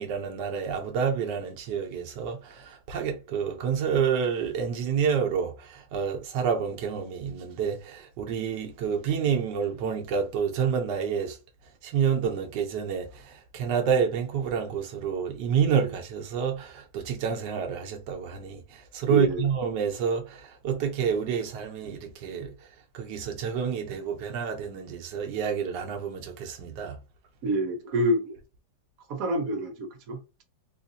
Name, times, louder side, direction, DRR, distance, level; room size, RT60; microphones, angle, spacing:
voice 1, 0.0-11.4 11.8-27.0, right 7 dB, 90° right, 1.4 m, -29 dB
voice 2, 19.1-19.4 27.4-28.4 29.1-30.4, right 1 dB, 60° right, 1.2 m, -27 dB
3.8 x 2.5 x 2.7 m
omnidirectional pair, 1.8 m